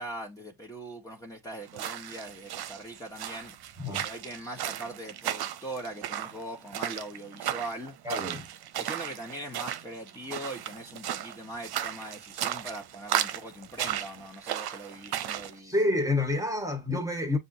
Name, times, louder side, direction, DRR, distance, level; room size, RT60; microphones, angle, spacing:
voice 1, 0.0-3.5 3.9-7.9 8.8-15.7, right 1 dB, 10° left, 1.5 m, -41 dB
sound 1, 1.7-15.5, right 11 dB, 60° right, 0.8 m, -35 dB
voice 2, 3.8-4.1 8.0-8.5 15.6-17.4, left 2 dB, 5° right, 1.7 m, -28 dB
6.7 x 2.7 x 2.7 m
hypercardioid pair, 50°, 43 cm